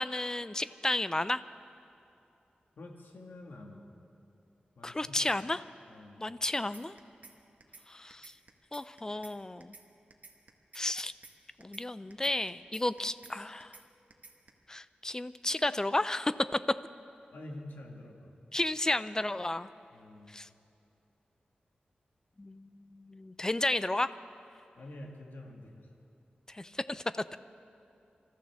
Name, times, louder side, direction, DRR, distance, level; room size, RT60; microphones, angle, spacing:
voice 1, 0.0-1.4 4.8-5.6 6.2-6.9 7.9-8.3 8.7-9.8 10.7-11.1 11.6-13.8 14.7-16.3 18.5-19.7 20.3-20.5 22.4-24.1 26.5-27.0, left 2 dB, 20° left, 14 dB, 0.4 m, -32 dB
voice 2, 2.8-3.9 4.8-5.2 5.9-6.3 17.3-18.3 19.9-20.3 24.8-25.9, left 1 dB, 80° left, 0 dB, 2.0 m, -47 dB
sound 1, 6.7-7.3 7.6-7.8 8.1-9.3 9.6-9.8 10.1-11.3 11.6-11.8 12.1-13.3 13.6-13.8 14.1-14.5, right 4 dB, 50° right, 1.3 m, -52 dB
27.0 x 14.0 x 3.6 m, 2.8 s
wide cardioid pair, 90°, 3 cm